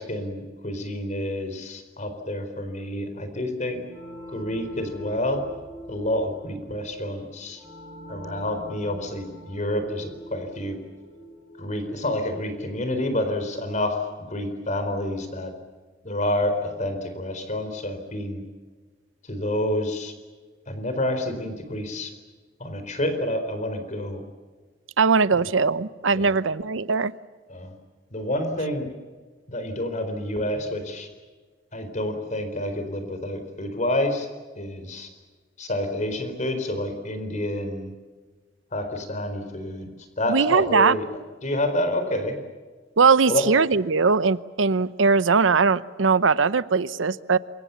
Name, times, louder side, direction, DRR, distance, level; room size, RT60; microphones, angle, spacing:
voice 1, 0.0-3.8 4.3-5.4 5.9-7.6 8.1-10.8 11.6-14.0 14.3-15.5 16.0-18.4 19.3-20.1 20.7-22.1 22.6-24.2 25.4-25.5 26.1-26.3 27.5-27.7 28.1-28.9 29.5-31.1 31.7-34.3 34.6-35.1 35.6-37.9 38.7-39.9 40.2-41.0 41.4-42.4 43.3-43.5, left 1 dB, 40° left, 8 dB, 4.4 m, -28 dB
sound 1, 3.9-14.3, equal, 25° left, 6.2 m, -44 dB
voice 2, 25.0-27.1 40.3-41.0 43.0-47.4, right 4 dB, 90° right, 16 dB, 0.8 m, -20 dB
28.0 x 24.0 x 7.1 m, 1.4 s
head